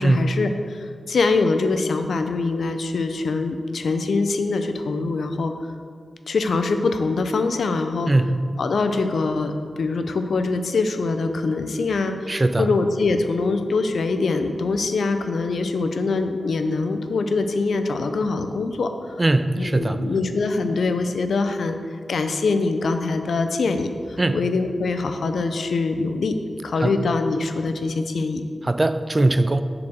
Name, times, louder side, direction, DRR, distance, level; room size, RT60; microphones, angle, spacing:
voice 1, 0.0-5.5 6.3-8.1 8.6-19.2 19.6-21.8 22.1-26.4 26.6-28.4, left 3 dB, 80° left, 7 dB, 0.5 m, -23 dB
voice 2, 12.3-12.7 19.2-20.0 24.2-24.4 26.8-26.9 28.7-29.6, right 2 dB, 25° right, 11 dB, 0.3 m, -20 dB
6.9 x 4.9 x 6.4 m, 2.1 s
wide cardioid pair, 120°, 0 cm